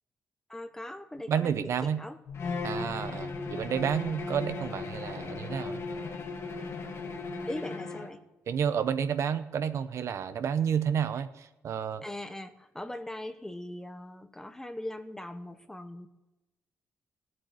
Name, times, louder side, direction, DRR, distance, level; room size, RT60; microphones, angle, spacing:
voice 1, 0.5-2.2 7.4-8.2 12.0-16.1, left 1 dB, 10° left, 10 dB, 0.7 m, -40 dB
voice 2, 1.3-2.0 2.6-5.8 8.5-12.0, right 8 dB, 60° right, 11 dB, 0.7 m, -30 dB
sound 1, 2.3-7.4, left 4 dB, 80° left, 1.3 m, -45 dB
Bowed string instrument, 2.3-8.2, left 4 dB, 50° left, 1.7 m, -37 dB
17.5 x 7.8 x 9.5 m, 1.0 s
wide cardioid pair, 155°, 5 cm